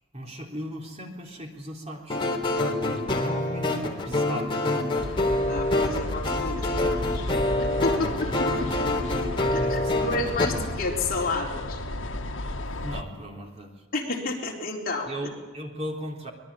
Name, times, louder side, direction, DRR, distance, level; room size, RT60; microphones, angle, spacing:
voice 1, 0.1-2.2 3.2-5.1 7.9-8.1 9.4-10.3 12.8-13.8 15.1-16.3, equal, 30° right, 1 dB, 3.6 m, -37 dB
sound 1, 2.1-10.5, left 1 dB, 25° left, 3.3 m, -26 dB
sound 2, 5.0-13.0, left 1 dB, 65° left, 1.9 m, -33 dB
voice 2, 5.5-7.2 7.8-9.1 9.5-11.8 13.9-15.1, left 3 dB, 45° left, -1 dB, 4.1 m, -31 dB
24.5 x 21.0 x 8.6 m, 1.2 s
head